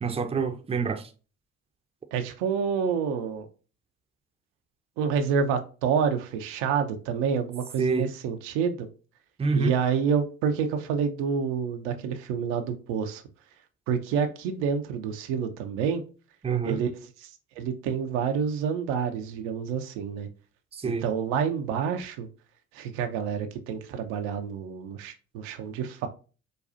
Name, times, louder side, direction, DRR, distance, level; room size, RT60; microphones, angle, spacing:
voice 1, 0.0-1.0 7.8-8.1 9.4-9.7 16.4-16.8 20.7-21.0, right 5 dB, 15° right, 0.6 m, -26 dB
voice 2, 2.1-3.5 5.0-8.9 9.5-13.2 13.9-16.0 16.6-20.3 20.8-22.3 22.7-26.1, right 7 dB, 75° right, 0.7 m, -28 dB
5.2 x 2.3 x 2.5 m
hypercardioid pair, 60°, 35 cm